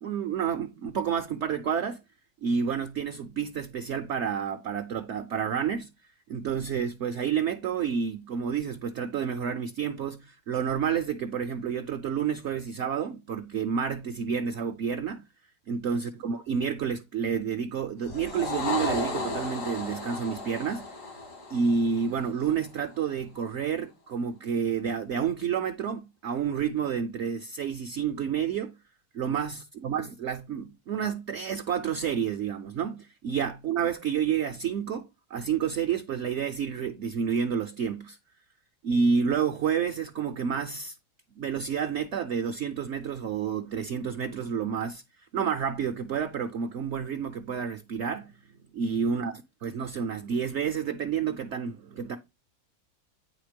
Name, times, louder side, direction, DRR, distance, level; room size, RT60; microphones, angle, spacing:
voice 1, 0.0-2.0 2.4-5.9 6.3-15.2 15.7-20.9 21.5-28.7 29.1-38.2 38.8-41.0 41.4-45.0 45.3-52.2, right 7 dB, 60° right, 0.7 m, -29 dB
sound 1, 18.0-22.6, left 3 dB, 85° left, 3.2 m, -34 dB
9.4 x 3.4 x 5.1 m
omnidirectional pair, 1.7 m